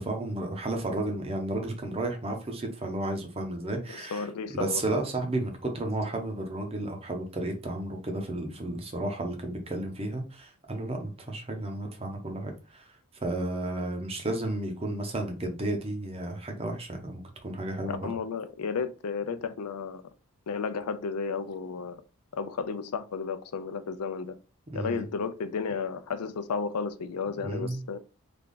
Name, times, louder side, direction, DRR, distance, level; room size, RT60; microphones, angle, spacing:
voice 1, 0.0-4.3 4.5-12.9 13.2-18.0 24.7-25.0 27.4-27.8, right 2 dB, 25° right, 0.7 m, -32 dB
voice 2, 3.9-5.0 17.9-20.0 20.5-22.0 22.3-24.3 24.7-28.0, left 5 dB, 80° left, 0.5 m, -33 dB
3.4 x 2.3 x 3.8 m
head